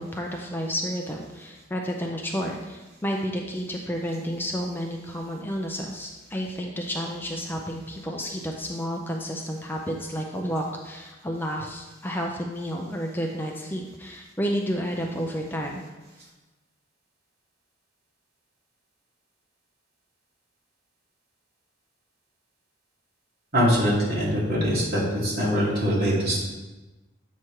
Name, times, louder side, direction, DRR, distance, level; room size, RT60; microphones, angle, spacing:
voice 1, 0.0-15.8, equal, 10° left, 0 dB, 0.5 m, -31 dB
voice 2, 23.5-26.5, equal, 50° right, -6 dB, 2.2 m, -23 dB
7.6 x 3.1 x 5.6 m, 1.1 s
head